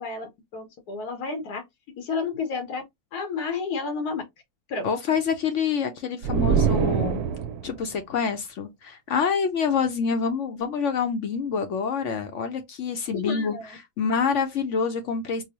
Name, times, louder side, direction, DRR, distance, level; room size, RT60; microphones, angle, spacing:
voice 1, 0.0-1.6 2.0-2.8 3.1-4.2 4.7-4.9 13.1-13.7, left 4 dB, 85° left, 1.4 m, -31 dB
voice 2, 4.8-7.2 7.6-13.5 14.0-15.4, left 6 dB, 65° left, 0.8 m, -26 dB
sound 1, 6.2-7.8, right 7 dB, 80° right, 1.1 m, -24 dB
4.7 x 2.1 x 2.8 m
omnidirectional pair, 1.6 m